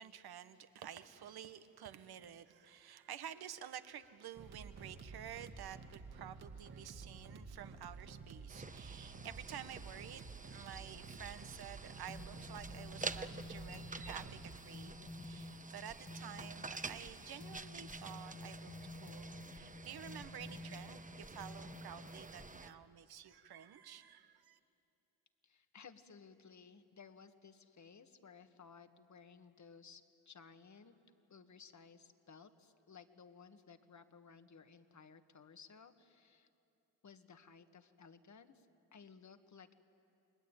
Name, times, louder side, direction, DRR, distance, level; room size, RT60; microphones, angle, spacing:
voice 1, 0.0-24.6, right 9 dB, 70° right, 10 dB, 1.5 m, -51 dB
sound 1, 4.3-14.6, right 4 dB, 50° right, 2.4 m, -52 dB
sound 2, 8.5-22.7, right 3 dB, 20° right, 1.3 m, -49 dB
sound 3, 12.1-22.7, left 2 dB, 20° left, 1.5 m, -51 dB
voice 2, 25.4-30.9 31.3-36.5 37.0-38.7 38.9-39.7, left 6 dB, 45° left, 9 dB, 1.9 m, -58 dB
30.0 x 21.5 x 9.1 m, 2.7 s
supercardioid pair, 60°, 39 cm